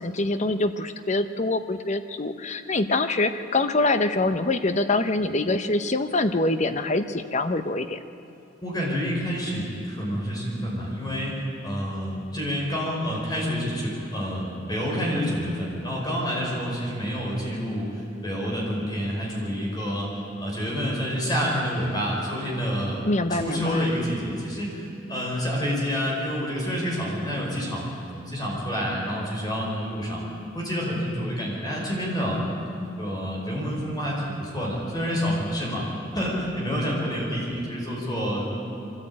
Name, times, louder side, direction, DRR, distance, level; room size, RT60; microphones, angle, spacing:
voice 1, 0.0-8.0 23.0-23.9, left 2 dB, 40° left, 9 dB, 0.8 m, -25 dB
voice 2, 8.6-17.9 18.2-20.1 20.4-23.0 23.3-30.2 30.5-32.4 33.0-35.8 36.1-38.5, equal, 20° left, -3 dB, 5.4 m, -28 dB
24.0 x 14.5 x 8.8 m, 2.8 s
head